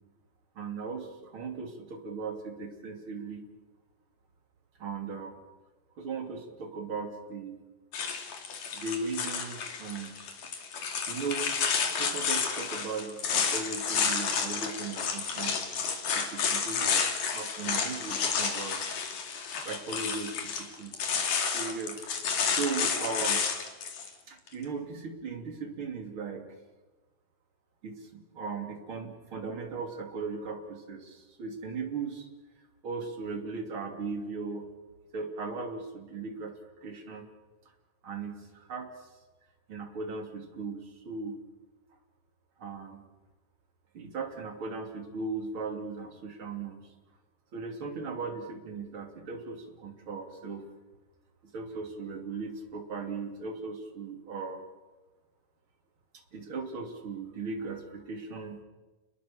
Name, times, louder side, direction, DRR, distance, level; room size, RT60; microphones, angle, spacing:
voice 1, 0.6-3.5 4.8-5.3 6.0-7.6 8.7-10.2 10.8-11.5 12.0-15.6 16.1-18.9 19.5-21.0 21.5-22.1 22.5-23.5 24.3-26.5 27.8-32.3 32.8-34.7 35.1-36.5 36.8-37.3 38.0-39.1 39.7-41.4 42.6-43.0 43.9-46.9 47.5-50.7 51.5-54.6 56.3-58.6, right 4 dB, 40° right, 4 dB, 3.4 m, -38 dB
sound 1, 7.9-24.1, left 6 dB, 70° left, 3.9 m, -31 dB
29.5 x 21.5 x 7.3 m, 1.2 s
omnidirectional pair, 3.8 m